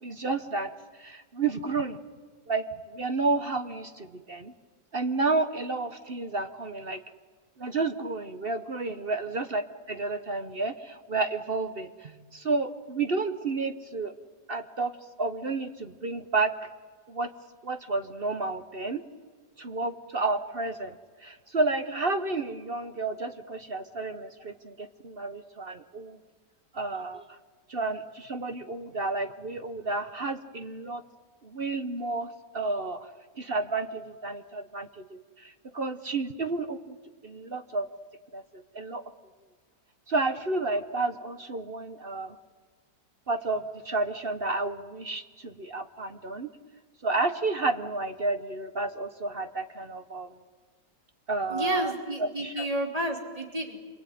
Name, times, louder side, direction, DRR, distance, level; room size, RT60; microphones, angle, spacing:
voice 1, 0.0-0.7 1.0-2.0 2.5-4.5 4.9-7.0 7.6-9.6 9.9-14.1 14.5-14.9 15.2-16.5 17.1-17.3 17.6-19.0 19.6-21.0 21.2-26.2 26.7-27.2 27.7-31.0 31.4-32.3 32.5-33.0 33.4-37.0 37.2-37.8 38.3-39.0 40.1-42.4 43.3-46.5 47.0-50.3 51.3-51.9 52.2-52.7, right 3 dB, 40° right, 9 dB, 1.1 m, -31 dB
voice 2, 51.5-53.8, equal, 20° right, 3 dB, 3.2 m, -31 dB
27.0 x 23.0 x 9.3 m, 1.5 s
omnidirectional pair, 1.8 m